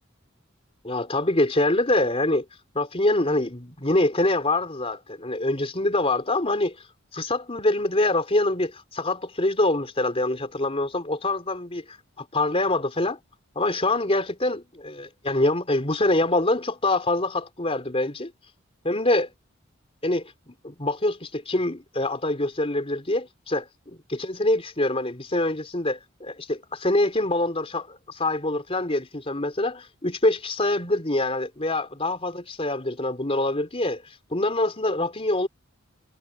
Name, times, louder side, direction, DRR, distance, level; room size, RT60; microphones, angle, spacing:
voice 1, 0.8-2.4 2.7-6.8 7.1-13.2 13.6-18.3 18.8-19.3 20.0-23.7 24.1-35.5, left 2 dB, 30° left, 3.9 m, -25 dB
head